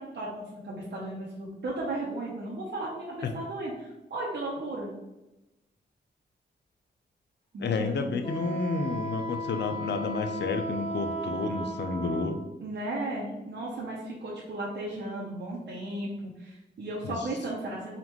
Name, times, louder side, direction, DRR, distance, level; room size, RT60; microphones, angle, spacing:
voice 1, 0.0-4.9 7.5-8.2 12.6-18.0, right 2 dB, 70° right, -4 dB, 0.8 m, -35 dB
voice 2, 7.6-12.4 17.0-17.2, left 4 dB, 70° left, 7 dB, 0.5 m, -30 dB
Wind instrument woodwind instrument, 8.2-12.4, right 2 dB, 30° left, 0.9 m, -35 dB
3.8 x 3.6 x 3.0 m, 0.98 s
wide cardioid pair, 95°, 19 cm